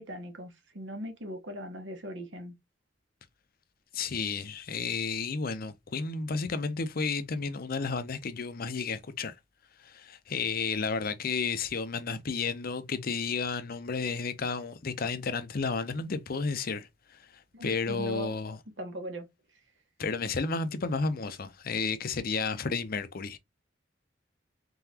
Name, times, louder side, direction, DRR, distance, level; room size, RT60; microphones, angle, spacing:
voice 1, 0.0-2.5 17.5-18.3 18.8-19.3, equal, 85° right, 1.4 m, -40 dB
voice 2, 3.9-9.3 9.8-16.9 17.3-18.6 20.0-23.4, left 4 dB, 55° left, 0.6 m, -32 dB
3.9 x 3.8 x 2.8 m
head